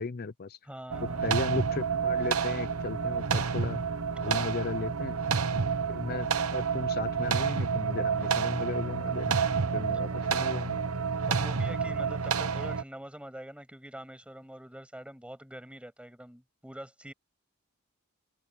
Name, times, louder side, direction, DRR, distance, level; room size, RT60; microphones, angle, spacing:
voice 1, 0.0-0.6 1.2-3.8 4.2-5.2 5.9-9.4 9.7-10.8, left 4 dB, 45° left, 0.6 m, -36 dB
voice 2, 0.6-1.2 4.2-4.6 11.3-17.1, right 1 dB, 5° right, 6.9 m, -45 dB
sound 1, 0.9-12.8, right 5 dB, 90° right, 1.0 m, -29 dB
head